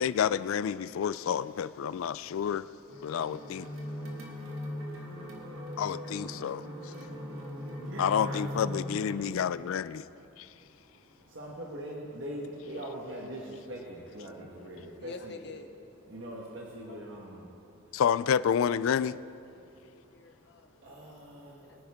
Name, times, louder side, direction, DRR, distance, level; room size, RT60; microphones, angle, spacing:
voice 1, 0.0-2.7 3.0-3.7 5.8-6.7 8.0-10.0 10.4-10.5 17.9-19.2, left 8 dB, 75° left, 17 dB, 0.3 m, -29 dB
sound 1, 2.9-9.1, left 1 dB, 80° right, 1.9 m, -39 dB
voice 2, 3.7-5.8 6.4-10.0 10.6-15.4 16.1-17.5 17.8-18.0 20.8-21.8, equal, 60° right, -2 dB, 1.4 m, -44 dB
voice 3, 15.0-15.7 16.9-17.1 19.5-21.0 21.7-21.8, left 3 dB, 55° left, 6 dB, 1.0 m, -48 dB
22.5 x 9.7 x 3.6 m, 2.7 s
head